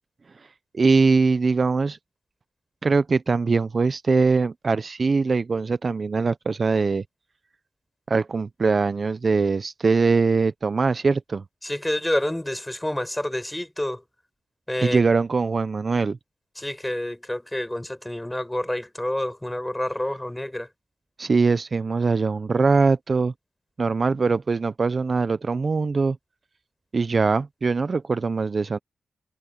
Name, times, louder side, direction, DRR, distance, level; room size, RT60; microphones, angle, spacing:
voice 1, 0.7-2.0 2.8-7.0 8.1-11.4 14.8-16.2 21.2-23.3 23.8-26.2 26.9-28.8, right 4 dB, 45° right, 0.6 m, -22 dB
voice 2, 11.6-14.0 14.7-15.0 16.6-20.7, left 1 dB, 10° left, 6.1 m, -28 dB
cardioid pair, 90°, 0 cm